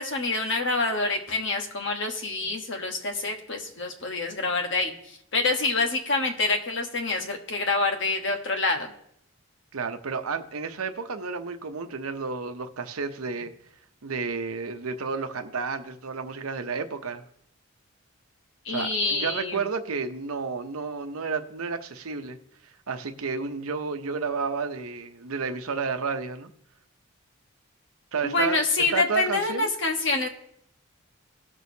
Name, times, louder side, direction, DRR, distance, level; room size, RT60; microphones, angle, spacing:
voice 1, 0.0-8.9 18.6-19.6 28.2-30.3, left 3 dB, 60° left, 4 dB, 1.2 m, -27 dB
voice 2, 9.7-13.5 14.0-17.2 18.7-22.4 22.9-26.5 28.1-28.6 28.9-29.7, right 5 dB, 90° right, 7 dB, 0.8 m, -31 dB
18.5 x 6.2 x 2.8 m, 0.72 s
head